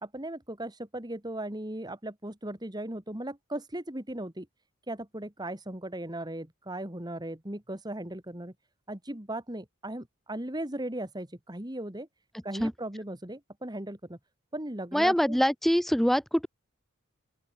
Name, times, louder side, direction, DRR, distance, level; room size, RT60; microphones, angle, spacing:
voice 1, 0.0-4.5 4.9-8.5 8.9-12.1 12.4-14.2 14.5-15.4, right 1 dB, 20° right, 2.3 m, -37 dB
voice 2, 14.9-16.5, equal, ahead, 0.4 m, -24 dB
open air
head